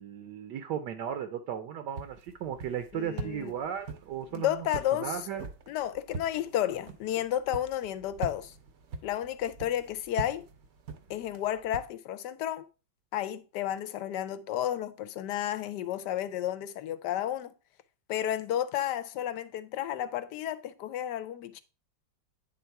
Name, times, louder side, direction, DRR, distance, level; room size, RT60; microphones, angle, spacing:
voice 1, 0.0-4.7 5.0-5.4, right 9 dB, 75° right, 1.2 m, -36 dB
sound 1, 1.9-11.9, right 4 dB, 55° right, 0.7 m, -43 dB
voice 2, 2.9-3.5 4.3-5.2 5.7-8.5 9.0-10.4 11.1-12.6 13.1-17.5 18.1-21.6, left 11 dB, 75° left, 1.2 m, -32 dB
9.5 x 3.6 x 4.5 m
omnidirectional pair, 2.0 m